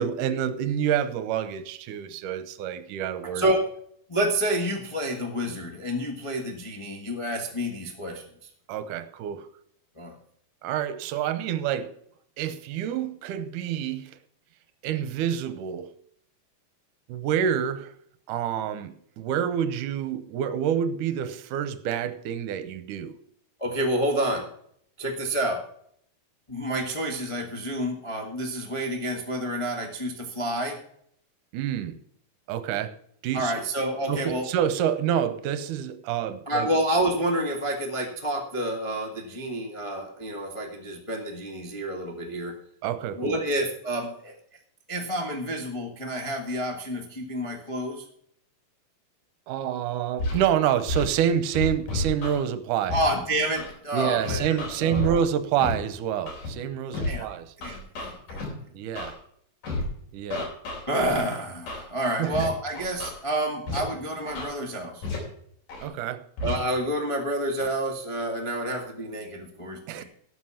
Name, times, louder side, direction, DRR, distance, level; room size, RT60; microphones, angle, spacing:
voice 1, 0.0-3.5 8.7-9.5 10.6-11.9 12.4-14.1 14.8-15.9 17.1-17.9 18.3-23.2 31.5-32.0 32.5-33.0 33.2-33.6 34.1-36.7 42.8-43.4 49.5-53.0 53.9-57.5 58.7-59.2 60.1-60.5 62.2-62.5 65.8-66.3 69.9-70.0, right 9 dB, 75° right, 2.2 m, -27 dB
voice 2, 3.2-3.7 4.1-8.2 10.0-10.1 23.6-24.4 25.0-25.6 26.5-30.8 33.3-34.5 36.5-42.5 43.2-44.3 44.9-48.0 52.9-55.2 57.0-57.3 57.6-58.4 60.9-65.0 66.4-70.0, right 1 dB, 40° left, 0.4 m, -29 dB
Scratching (performance technique), 50.2-50.4 50.9-51.0 51.5-52.4 52.9-53.0 53.6-53.7 54.2-55.1 55.6-55.7 56.3-56.5 56.9-57.1 57.6-58.5 59.0-59.1 59.6-59.8 60.3-61.2 61.7-61.8 62.3-62.5 62.7-63.1 63.7-63.8 64.3-64.5 65.0-65.2 65.7-65.8 66.4-66.5, left 3 dB, 65° left, 5.3 m, -30 dB
12.5 x 8.0 x 5.8 m
omnidirectional pair, 4.0 m